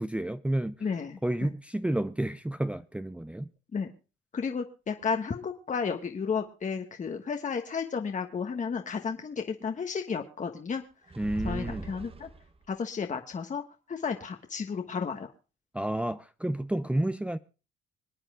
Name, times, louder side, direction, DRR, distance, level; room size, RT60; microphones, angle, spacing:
voice 1, 0.0-0.8 1.2-3.5 11.2-11.9 15.7-17.4, right 1 dB, 5° right, 0.6 m, -30 dB
voice 2, 0.8-1.5 3.7-3.9 4.3-10.8 11.4-12.3 12.7-13.6 13.9-15.3, left 5 dB, 40° left, 1.4 m, -33 dB
sound 1, 11.1-12.7, right 3 dB, 30° right, 1.1 m, -40 dB
26.5 x 9.0 x 2.3 m
cardioid pair, 90°, 20 cm